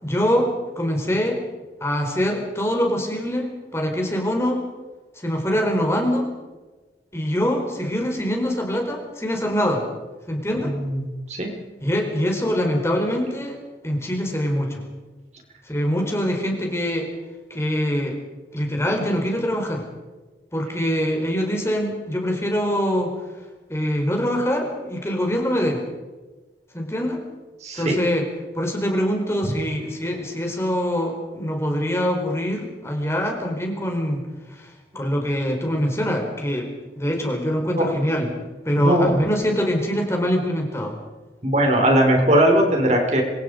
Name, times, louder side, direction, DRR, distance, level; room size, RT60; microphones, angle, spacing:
voice 1, 0.0-1.4 1.8-4.6 5.2-6.3 7.1-9.8 10.3-10.7 11.8-13.6 13.8-14.8 15.7-17.1 17.5-18.2 18.5-19.8 20.5-23.1 23.7-25.8 26.7-27.2 27.7-28.2 28.5-34.2 34.5-36.7 37.0-38.3 38.6-41.0, equal, 15° left, 1 dB, 4.7 m, -24 dB
voice 2, 10.6-11.0 11.3-11.5 27.6-28.0 34.9-35.1 37.8-37.9 38.8-39.1 41.4-43.2, right 1 dB, 40° right, 1 dB, 5.7 m, -19 dB
27.0 x 26.5 x 5.3 m, 1.2 s
head